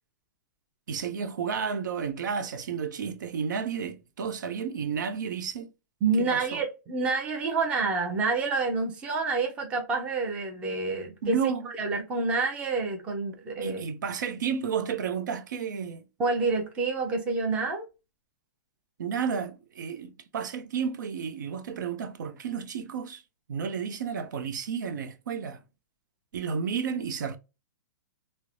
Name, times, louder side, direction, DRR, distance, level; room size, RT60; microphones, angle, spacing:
voice 1, 0.9-5.7 6.2-6.6 11.2-11.7 13.6-16.0 19.0-23.2 23.5-25.6 26.3-27.4, right 6 dB, 75° right, 0.6 m, -32 dB
voice 2, 6.0-11.4 11.8-13.8 16.2-17.9, right 4 dB, 10° right, 0.5 m, -28 dB
3.1 x 2.0 x 2.4 m
hypercardioid pair, 170°, 10 cm